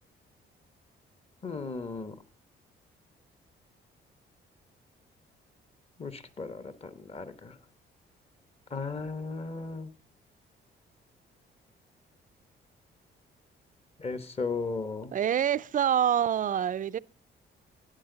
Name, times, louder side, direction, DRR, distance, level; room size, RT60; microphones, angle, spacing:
voice 1, 1.4-2.2 6.0-7.6 8.7-9.9 14.0-15.1, left 4 dB, 30° left, 1.3 m, -36 dB
voice 2, 15.1-17.0, right 9 dB, 40° right, 0.4 m, -26 dB
13.0 x 10.0 x 3.9 m
cardioid pair, 90°, 20 cm